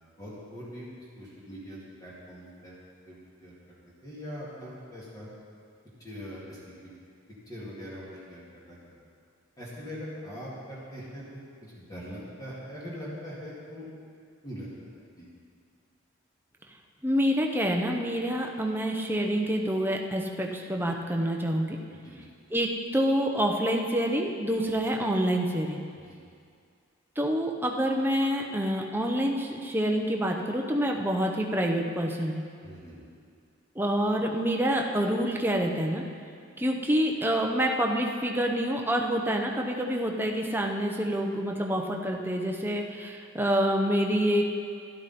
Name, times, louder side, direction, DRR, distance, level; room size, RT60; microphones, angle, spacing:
voice 1, 0.2-2.8 3.1-3.8 4.0-5.3 6.0-6.9 7.5-8.8 9.6-13.9 14.4-14.7 15.2-15.3 21.9-22.3 26.1-26.2 32.6-33.1, equal, 20° left, -7 dB, 2.3 m, -42 dB
voice 2, 17.0-21.8 22.5-25.8 27.2-32.4 33.8-36.0 36.6-44.4, equal, 10° right, 1 dB, 0.8 m, -27 dB
12.0 x 11.5 x 4.3 m, 2.3 s
head